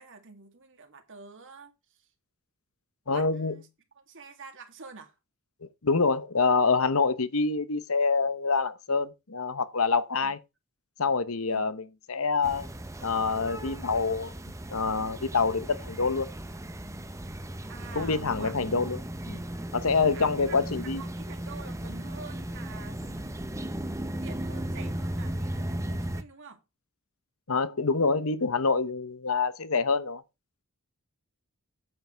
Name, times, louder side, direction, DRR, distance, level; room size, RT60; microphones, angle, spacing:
voice 1, 0.0-2.1 3.1-3.7 3.9-5.2 10.2-10.3 11.5-11.7 17.7-18.6 20.1-23.6 24.2-26.6, right 4 dB, 60° right, 2.5 m, -47 dB
voice 2, 3.1-3.5 5.6-10.4 11.0-12.7 13.0-14.3 14.7-16.3 17.9-19.0 19.2-19.4 19.7-21.0 27.5-30.2, left 4 dB, 70° left, 1.1 m, -26 dB
sound 1, 12.4-26.2, right 1 dB, 15° right, 0.9 m, -36 dB
9.6 x 8.3 x 4.7 m
head